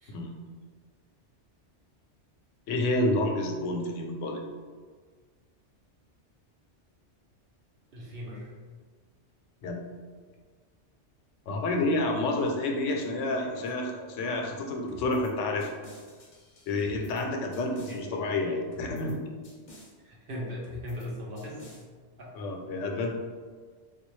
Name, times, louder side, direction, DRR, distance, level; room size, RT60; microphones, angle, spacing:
voice 1, 2.7-4.4 9.6-9.8 11.5-15.7 16.7-19.2 22.3-23.1, left 2 dB, 85° left, 2 dB, 0.9 m, -29 dB
voice 2, 7.9-8.5 12.7-13.0 13.3-13.6 17.9-18.3 20.0-21.7 22.2-22.5, left 1 dB, 55° right, -4 dB, 0.9 m, -39 dB
sound 1, 14.9-15.3 15.6-17.2 17.5-18.0 18.7-19.1 19.4-19.9 20.6-21.1 21.4-21.8, equal, 45° left, 0.7 m, -50 dB
3.7 x 2.3 x 3.1 m, 1.5 s
omnidirectional pair, 1.2 m